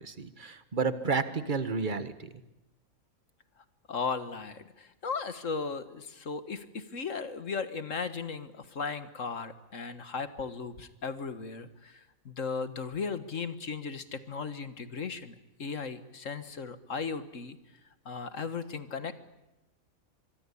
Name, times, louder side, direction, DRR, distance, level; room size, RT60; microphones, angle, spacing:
voice 1, 0.0-2.3, right 5 dB, 35° right, 12 dB, 1.5 m, -31 dB
voice 2, 3.9-17.6 18.1-19.2, left 5 dB, 60° left, 11 dB, 1.8 m, -36 dB
25.5 x 23.0 x 8.5 m, 0.96 s
omnidirectional pair, 1.5 m